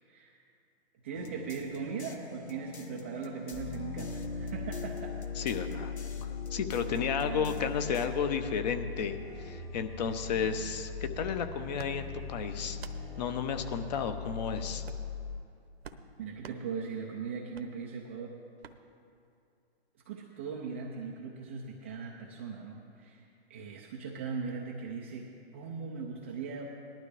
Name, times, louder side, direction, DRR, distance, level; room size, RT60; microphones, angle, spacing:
voice 1, 0.1-0.4 1.0-5.2 7.2-7.7 16.2-18.4 20.1-23.2 23.5-26.7, right 5 dB, 15° right, -2 dB, 0.3 m, -39 dB
sound 1, 1.1-8.1, left 2 dB, 90° left, 1.2 m, -44 dB
sound 2, 3.5-15.4, left 6 dB, 10° left, 1.1 m, -40 dB
voice 2, 5.4-5.9 6.2-12.8 13.2-14.8, left 6 dB, 40° left, 8 dB, 0.9 m, -33 dB
sound 3, 11.7-11.9 12.7-13.0 13.9-14.1 14.8-15.1 15.8-16.0 16.4-16.6 17.5-17.7 18.6-18.8, right 7 dB, 70° right, 0.9 m, -47 dB
19.0 x 12.0 x 3.3 m, 2.5 s
hypercardioid pair, 135°, 32 cm